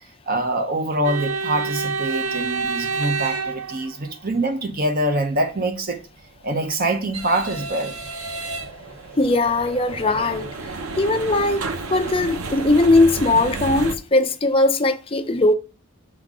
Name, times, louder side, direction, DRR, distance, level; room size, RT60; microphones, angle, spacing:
voice 1, 0.3-6.0 6.4-8.0, right 1 dB, 45° right, 0.9 m, -24 dB
sound 1, 1.0-4.2 6.3-14.0, right 4 dB, 85° right, 0.8 m, -30 dB
voice 2, 9.2-10.6 10.9-15.5, left 2 dB, 25° left, 0.6 m, -19 dB
6.2 x 4.0 x 4.8 m
head